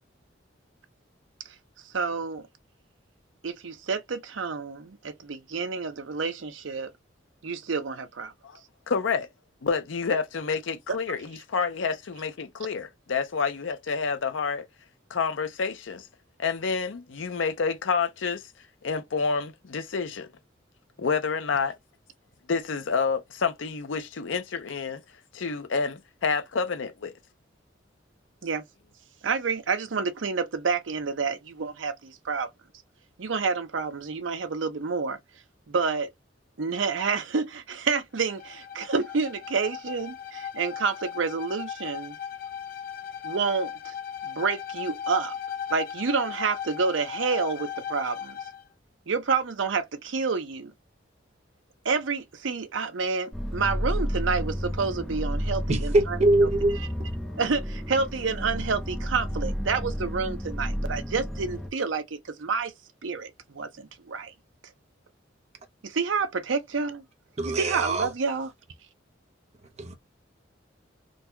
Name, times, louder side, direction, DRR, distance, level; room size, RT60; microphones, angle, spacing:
voice 1, 1.9-2.5 3.4-6.9 7.4-8.3 28.4-28.6 29.2-32.5 33.2-35.2 35.7-36.1 36.6-42.2 43.2-43.9 44.2-45.3 45.7-48.4 49.1-50.7 51.8-56.2 57.4-62.7 63.0-64.3 65.8-67.0 67.6-68.5, right 5 dB, 85° right, 0.6 m, -29 dB
voice 2, 8.9-9.3 9.6-14.7 15.1-16.0 16.4-18.4 18.8-20.3 21.0-21.8 22.5-25.0 25.3-27.1, left 5 dB, 90° left, 0.6 m, -28 dB
Bowed string instrument, 38.1-48.6, left 9 dB, 50° left, 0.6 m, -37 dB
sound 1, 53.3-61.7, equal, ahead, 0.6 m, -31 dB
voice 3, 55.7-57.1 67.4-68.1 69.8-69.9, right 2 dB, 35° right, 0.7 m, -24 dB
3.9 x 2.2 x 2.7 m
head